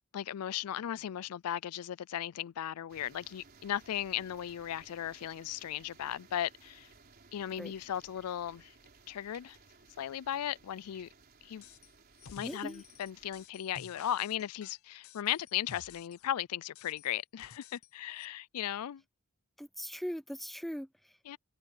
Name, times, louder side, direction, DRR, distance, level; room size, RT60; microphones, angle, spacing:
voice 1, 0.0-6.9 7.3-8.7 9.1-9.6 10.0-11.1 11.4-11.6 12.3-19.0 21.3-21.4, left 11 dB, 90° left, 0.4 m, -37 dB
sound 1, 2.9-13.5, right 4 dB, 45° right, 4.1 m, -60 dB
sound 2, 11.6-11.9 12.2-16.3 16.7-17.9 18.2-18.3, left 7 dB, 70° left, 0.7 m, -53 dB
voice 2, 12.4-12.8 19.6-21.1, equal, ahead, 0.5 m, -40 dB
head